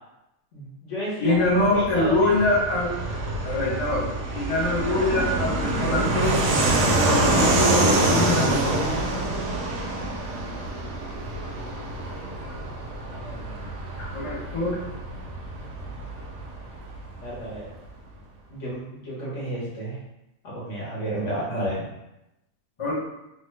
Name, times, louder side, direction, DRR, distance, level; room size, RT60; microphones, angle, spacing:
voice 1, 0.5-2.3 13.0-13.8 17.2-17.7 18.5-20.0 20.4-21.8, right 1 dB, 60° left, -6 dB, 1.3 m, -32 dB
voice 2, 1.2-2.9 3.4-6.4 6.9-8.9 14.0-14.8 22.8-22.9, left 2 dB, 30° left, -6 dB, 0.5 m, -24 dB
Fixed-wing aircraft airplane, 1.4-17.6, right 2 dB, 70° right, 0.8 m, -26 dB
3.0 x 2.2 x 3.1 m, 0.90 s
omnidirectional pair, 1.4 m